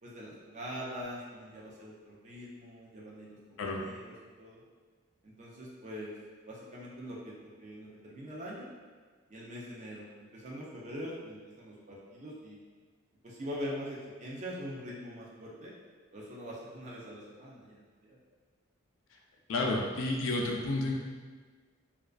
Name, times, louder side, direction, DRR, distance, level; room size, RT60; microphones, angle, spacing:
voice 1, 0.0-4.6 5.2-6.1 6.5-8.7 9.3-12.6 13.2-15.7 16.1-18.2, equal, 35° right, -5 dB, 0.4 m, -43 dB
voice 2, 19.5-20.9, left 2 dB, 65° left, 0 dB, 0.3 m, -30 dB
2.3 x 2.2 x 2.4 m, 1.5 s
head